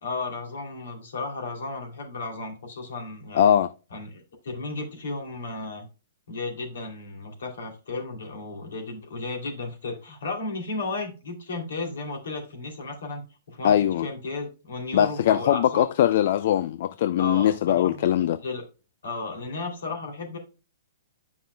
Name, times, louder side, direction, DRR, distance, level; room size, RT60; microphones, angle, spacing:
voice 1, 0.0-3.6 3.9-5.9 6.3-15.9 17.2-18.1 18.4-18.6 19.0-20.4, left 3 dB, 75° left, 2.9 m, -34 dB
voice 2, 3.3-3.7 13.6-14.1 14.9-18.4, left 10 dB, 55° left, 0.4 m, -21 dB
9.5 x 5.4 x 2.2 m
hypercardioid pair, 130°, 0 cm